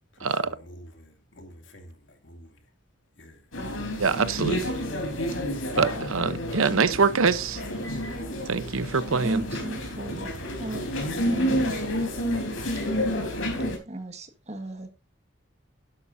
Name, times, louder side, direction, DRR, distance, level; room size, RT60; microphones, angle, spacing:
voice 1, 0.1-2.7 3.2-3.5 9.9-10.8 11.0-12.0, left 1 dB, 65° left, 2.5 m, -49 dB
sound 1, 3.5-13.8, equal, 80° left, 3.7 m, -30 dB
voice 2, 4.0-4.7 5.8-7.6 8.5-9.4, right 5 dB, 90° right, 0.8 m, -24 dB
voice 3, 9.2-10.9 11.2-11.7 13.9-14.9, right 1 dB, 35° right, 1.7 m, -35 dB
11.5 x 11.5 x 2.7 m
head